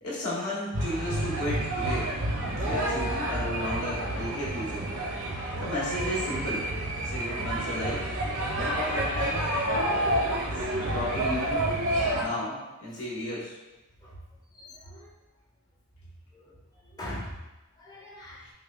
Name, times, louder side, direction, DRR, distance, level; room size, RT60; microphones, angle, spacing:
voice 1, 0.0-2.1 2.5-4.8 5.5-6.6 7.0-8.1 8.5-9.9 10.5-10.6 10.9-11.7 12.2-13.6 18.4-18.5, left 1 dB, 80° left, -6 dB, 1.2 m, -33 dB
sound 1, 0.7-12.2, right 1 dB, 65° right, 0.7 m, -29 dB
voice 2, 14.5-15.1 16.3-16.5 16.8-17.3 17.8-18.4, left 1 dB, 20° left, -5 dB, 0.5 m, -41 dB
5.5 x 2.2 x 2.4 m, 1.0 s
head